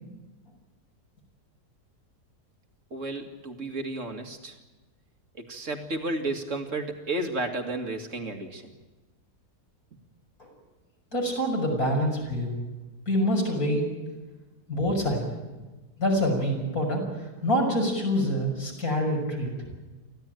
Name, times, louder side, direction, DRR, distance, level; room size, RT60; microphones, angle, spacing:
voice 1, 2.9-4.6 5.4-8.7, right 2 dB, 50° right, 5 dB, 2.5 m, -32 dB
voice 2, 11.1-12.6 13.1-13.9 14.7-15.2 16.0-17.0 17.4-19.5, equal, 65° left, 0 dB, 6.7 m, -25 dB
24.5 x 15.5 x 9.2 m, 1.2 s
omnidirectional pair, 1.7 m